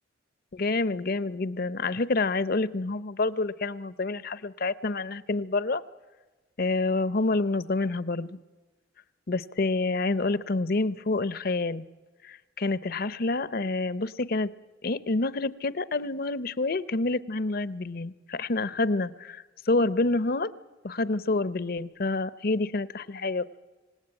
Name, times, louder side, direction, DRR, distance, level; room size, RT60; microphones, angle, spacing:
voice 1, 0.5-5.8 6.6-8.4 9.3-11.8 12.2-14.5 14.8-20.5 20.8-23.6, left 3 dB, 50° left, 16 dB, 0.7 m, -28 dB
26.5 x 18.0 x 8.9 m, 1.3 s
head